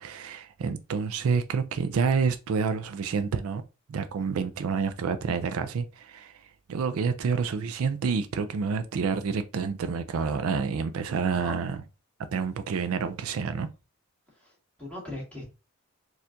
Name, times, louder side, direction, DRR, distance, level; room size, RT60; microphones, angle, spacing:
voice 1, 0.0-3.6 3.9-6.4 6.7-11.8 12.3-13.7, right 5 dB, 70° right, 0.4 m, -28 dB
voice 2, 14.3-15.5, left 1 dB, 5° left, 1.7 m, -40 dB
4.3 x 2.4 x 2.6 m
head